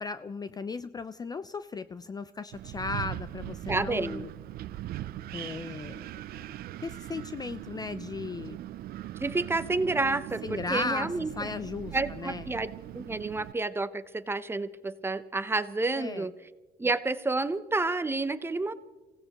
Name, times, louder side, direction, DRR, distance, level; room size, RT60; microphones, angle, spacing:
voice 1, 0.0-4.3 5.3-8.6 10.4-12.5 16.0-16.3, left 4 dB, 25° left, 13 dB, 0.4 m, -36 dB
Wind, 2.5-13.5, right 14 dB, 65° right, 0.5 m, -40 dB
voice 2, 3.7-4.2 9.2-10.4 10.7-11.3 11.9-16.3 16.8-18.7, right 3 dB, 15° right, 13 dB, 0.7 m, -29 dB
27.0 x 16.5 x 3.0 m, 1.3 s
cardioid pair, 110°, 17 cm